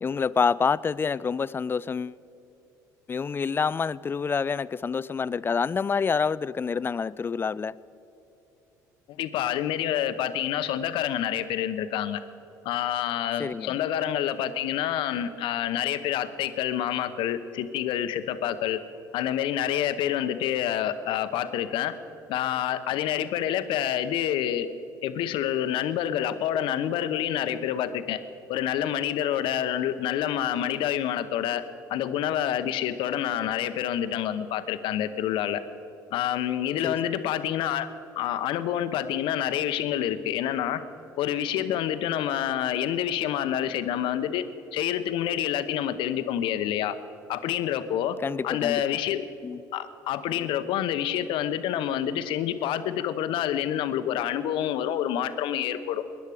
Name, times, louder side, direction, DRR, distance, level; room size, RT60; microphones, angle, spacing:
voice 1, 0.0-2.2 3.1-7.8 13.4-13.8 36.8-37.0 48.2-48.8 49.4-49.6, left 5 dB, 25° left, 0.3 m, -27 dB
voice 2, 9.2-12.2 12.6-18.8 19.1-21.9 22.3-24.7 25.0-28.2 28.5-31.6 31.9-35.6 36.1-37.9 38.2-40.8 41.2-44.4 44.7-46.9 47.3-48.2 48.4-49.3 49.7-56.1, left 10 dB, 65° left, 0.8 m, -27 dB
20.0 x 10.5 x 4.9 m
hypercardioid pair, 70°, 9 cm